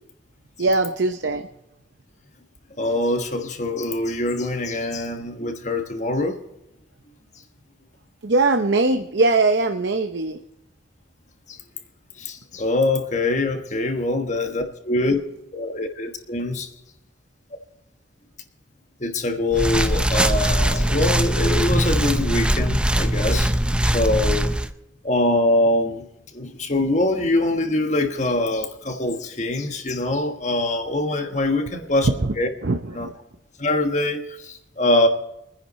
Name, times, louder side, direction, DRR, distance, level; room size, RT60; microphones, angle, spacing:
voice 1, 0.6-1.4 8.2-10.4 32.2-32.3 32.6-33.1, right 3 dB, 65° right, 7 dB, 0.7 m, -21 dB
voice 2, 2.8-6.4 11.5-11.6 12.2-15.2 15.5-16.7 19.0-23.5 23.8-24.5 25.0-32.1 32.4-32.5 32.9-33.1 33.6-35.1, left 2 dB, 40° left, 5 dB, 1.3 m, -23 dB
sound 1, 19.5-24.7, right 1 dB, 5° right, 0.5 m, -21 dB
24.5 x 10.0 x 4.2 m, 0.85 s
head